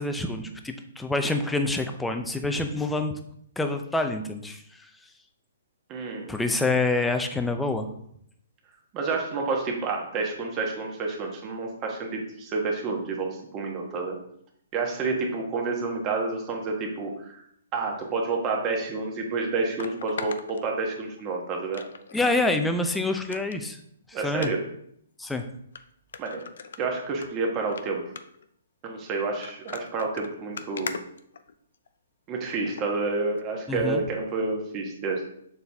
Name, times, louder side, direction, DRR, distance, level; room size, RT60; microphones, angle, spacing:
voice 1, 0.0-3.2 3.6-4.9 6.3-7.9 22.1-23.8 24.1-24.5 25.2-25.4 33.7-34.0, left 2 dB, 5° left, 6 dB, 0.6 m, -27 dB
voice 2, 5.9-6.3 8.9-13.3 13.5-14.2 14.7-17.4 17.7-21.8 24.1-24.6 26.2-26.4 26.8-28.0 28.8-30.9 32.3-35.2, right 3 dB, 25° right, 1 dB, 1.3 m, -29 dB
sound 1, 18.7-18.8 19.8-21.2 21.7-22.3 22.7-22.8 23.2-23.6 24.3-24.5 25.3-25.4 25.8-25.9 26.1-27.3 27.6-27.8 28.2-28.5 29.2-31.9 32.7-32.9 33.4-33.5, left 6 dB, 70° left, 0.5 m, -39 dB
6.9 x 4.0 x 3.5 m, 0.69 s
hypercardioid pair, 145°, 0 cm